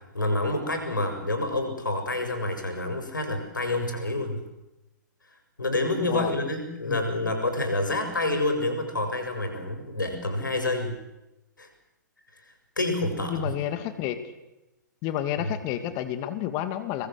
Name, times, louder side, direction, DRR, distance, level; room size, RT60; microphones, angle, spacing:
voice 1, 0.1-4.4 5.6-11.0 11.6-11.7 12.8-13.5 15.5-15.6, left 2 dB, 80° left, 6 dB, 7.2 m, -28 dB
voice 2, 13.3-14.2 15.0-17.1, left 11 dB, 30° left, 9 dB, 2.5 m, -30 dB
28.5 x 21.5 x 7.8 m, 0.98 s
figure-of-eight pair, 120°, 10 cm